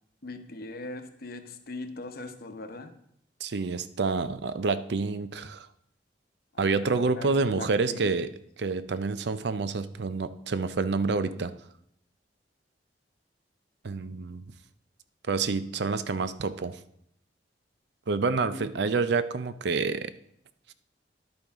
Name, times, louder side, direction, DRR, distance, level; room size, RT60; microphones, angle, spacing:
voice 1, 0.2-2.9 6.5-8.2 18.5-18.7, left 2 dB, 60° left, 8 dB, 0.9 m, -41 dB
voice 2, 3.4-5.7 6.6-8.3 8.6-11.5 13.8-14.4 15.3-16.8 18.1-20.1, right 4 dB, 70° right, 13 dB, 0.5 m, -28 dB
10.5 x 8.7 x 3.6 m, 0.73 s
head